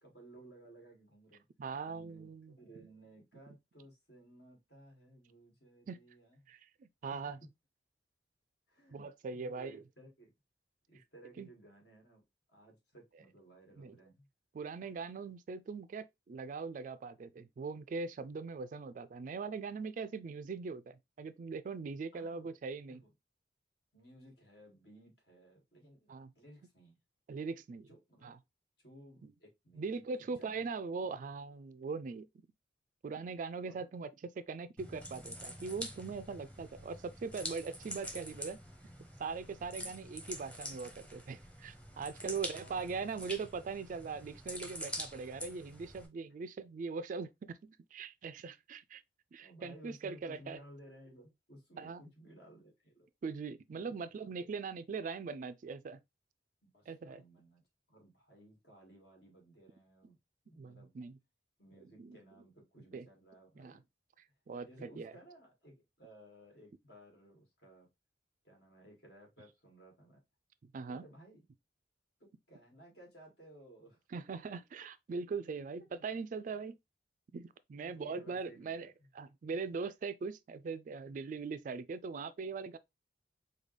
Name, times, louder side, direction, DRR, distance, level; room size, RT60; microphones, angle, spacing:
voice 1, 0.0-1.5 1.8-6.5 8.7-9.1 9.3-10.3 10.9-12.2 12.5-14.3 22.1-22.5 22.9-23.1 23.9-27.0 27.9-28.3 28.8-31.1 33.7-33.9 39.8-40.1 42.2-43.2 49.4-53.1 53.9-54.1 54.4-54.5 56.7-57.6 57.9-60.2 60.4-60.9 61.6-63.8 64.6-67.9 68.4-70.2 70.9-71.4 72.2-74.0 77.7-79.1, right 1 dB, 65° left, 2.0 m, -58 dB
voice 2, 1.6-2.5 5.9-6.0 6.5-7.4 8.9-9.8 11.4-11.5 13.8-14.0 14.5-23.0 26.1-26.3 27.3-27.9 28.2-28.4 29.2-29.3 29.8-32.3 33.0-34.1 34.4-38.6 39.2-49.0 49.3-50.6 51.8-52.0 53.2-56.0 56.9-57.2 60.6-61.2 62.0-62.2 62.9-63.1 63.6-63.8 64.5-65.1 70.6-71.0 74.1-76.8 77.3-82.8, right 4 dB, 45° right, 0.3 m, -41 dB
sound 1, 34.8-46.1, equal, 5° left, 0.8 m, -46 dB
5.1 x 2.3 x 3.2 m
head